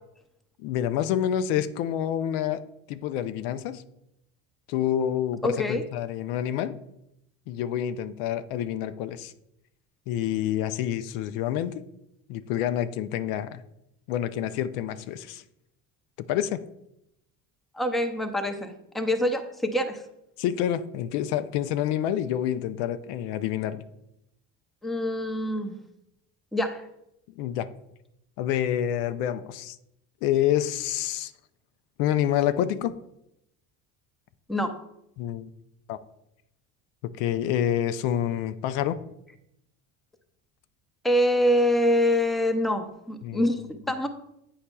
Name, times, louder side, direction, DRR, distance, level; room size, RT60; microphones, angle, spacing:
voice 1, 0.6-3.8 4.7-6.8 7.5-9.3 10.1-11.8 12.3-13.6 14.1-15.4 16.2-16.6 20.4-23.8 27.4-27.7 28.4-29.8 30.2-31.3 32.0-33.0 35.2-35.5 35.9-36.0 37.0-39.0 43.2-43.5 43.9-44.0, left 11 dB, 80° left, 12 dB, 0.5 m, -28 dB
voice 2, 5.4-5.8 17.7-20.1 24.8-25.8 26.5-26.8 34.5-34.9 41.0-44.1, left 1 dB, ahead, 5 dB, 0.5 m, -25 dB
8.5 x 5.7 x 2.2 m, 0.82 s
supercardioid pair, 105°, 37 cm